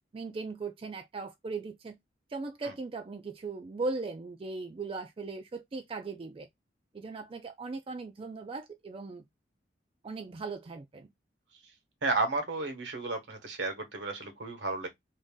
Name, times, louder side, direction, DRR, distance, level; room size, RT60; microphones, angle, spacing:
voice 1, 0.1-2.0 2.3-6.5 6.9-9.2 10.0-11.1, right 3 dB, 30° right, 0.4 m, -38 dB
voice 2, 12.0-14.9, right 3 dB, 75° right, 1.1 m, -32 dB
3.1 x 2.6 x 3.5 m
head